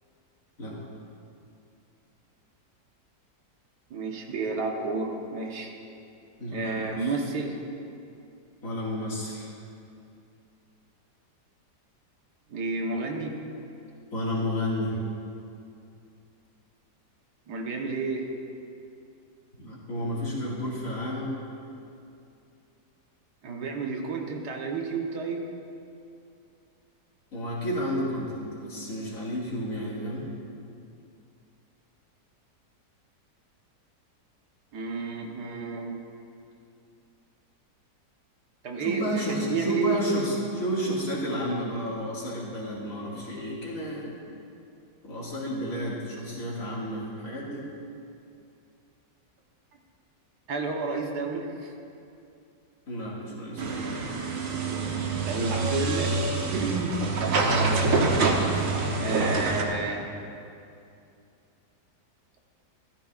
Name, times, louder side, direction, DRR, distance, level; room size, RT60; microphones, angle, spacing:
voice 1, 3.9-5.7 6.5-7.6 12.5-13.3 17.5-18.3 23.4-25.4 34.7-36.0 38.6-40.0 50.5-51.7 55.3-56.1 56.5-57.0 59.0-60.1, right 4 dB, 70° right, 1 dB, 1.6 m, -30 dB
voice 2, 6.4-7.1 8.6-9.5 14.1-15.0 19.6-21.3 27.3-30.3 38.8-44.1 45.0-47.6 52.9-54.0 58.2-58.7, equal, 55° left, -6 dB, 2.4 m, -31 dB
sound 1, 53.6-59.6, right 3 dB, 55° right, 1.3 m, -26 dB
15.0 x 13.0 x 2.4 m, 2.5 s
omnidirectional pair, 1.8 m